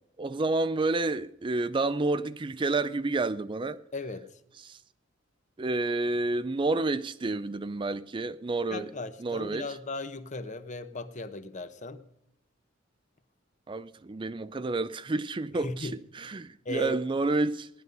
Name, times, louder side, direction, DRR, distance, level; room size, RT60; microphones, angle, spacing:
voice 1, 0.2-3.8 4.6-4.8 5.6-8.9 9.2-9.7 13.7-17.7, right 2 dB, 25° right, 0.4 m, -29 dB
voice 2, 3.9-4.3 8.7-12.0 15.6-16.0 16.6-17.0, left 2 dB, 40° left, 1.0 m, -37 dB
17.5 x 11.0 x 5.3 m
head